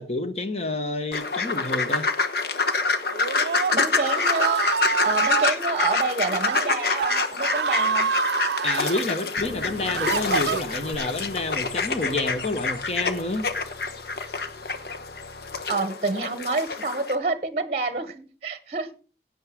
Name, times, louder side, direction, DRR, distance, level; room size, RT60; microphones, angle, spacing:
voice 1, 0.0-2.1 8.6-13.5, left 2 dB, 35° left, 8 dB, 1.3 m, -29 dB
sound 1, 1.1-17.2, left 4 dB, 60° left, 1.2 m, -27 dB
Screaming, 3.1-5.5 6.3-6.6 6.9-9.0 9.6-11.0, right 6 dB, 70° right, 0.5 m, -27 dB
voice 2, 3.7-4.6 5.0-8.1 15.7-19.0, right 3 dB, 35° right, 12 dB, 0.8 m, -28 dB
Bass guitar, 9.4-15.6, equal, 80° left, 1.6 m, -45 dB
16.0 x 8.8 x 3.6 m, 0.37 s
head